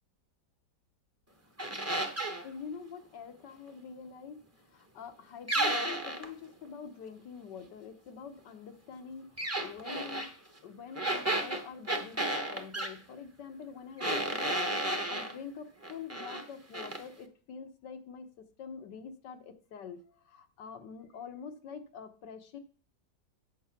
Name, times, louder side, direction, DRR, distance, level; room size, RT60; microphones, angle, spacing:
sound 1, 1.6-2.4 5.5-6.3 9.4-10.3 11.0-12.9 14.0-15.3 15.8-16.4 16.7-17.0, right 1 dB, 15° right, 0.7 m, -32 dB
voice 1, 2.4-4.4 4.7-10.3 10.6-18.3 18.6-22.6, left 6 dB, 85° left, 8 dB, 1.7 m, -46 dB
8.5 x 6.7 x 5.8 m, 0.42 s
omnidirectional pair, 1.8 m